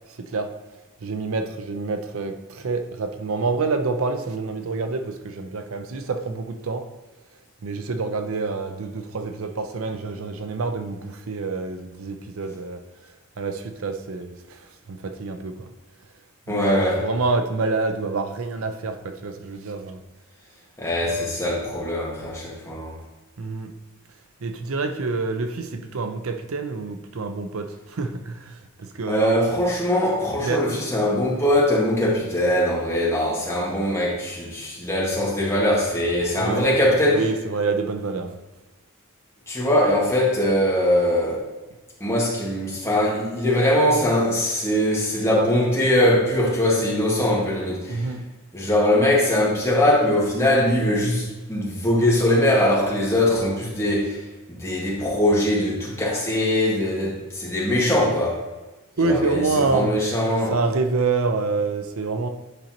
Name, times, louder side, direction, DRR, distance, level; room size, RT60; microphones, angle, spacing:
voice 1, 0.2-0.5 1.0-6.9 7.6-12.8 13.4-15.7 16.5-20.0 21.0-21.3 23.4-23.7 24.4-29.4 30.4-30.8 36.3-36.6 37.1-38.4 47.9-48.3 59.0-60.0 60.5-62.3, right 3 dB, 75° right, 0.5 m, -27 dB
voice 2, 16.5-17.0 20.8-22.9 29.1-37.3 39.5-41.4 42.0-48.1 48.5-54.2 54.5-58.4 59.0-60.5, left 1 dB, 10° left, 1.6 m, -21 dB
9.8 x 5.2 x 2.9 m
head